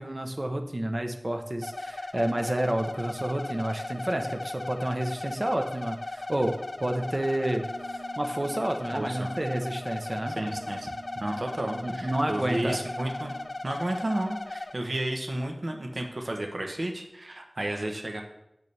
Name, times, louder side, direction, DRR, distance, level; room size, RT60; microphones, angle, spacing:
voice 1, 0.0-7.7 7.9-10.4 11.8-12.8, right 1 dB, 35° right, 5 dB, 1.0 m, -30 dB
sound 1, 1.6-14.7, left 2 dB, 65° left, 0.6 m, -37 dB
Wind instrument woodwind instrument, 7.5-13.5, right 2 dB, 85° right, 2.1 m, -47 dB
voice 2, 8.9-9.3 10.3-13.4 13.6-18.2, right 1 dB, 65° right, 3 dB, 1.1 m, -32 dB
10.0 x 6.8 x 3.5 m, 0.85 s
wide cardioid pair, 50°, 0 cm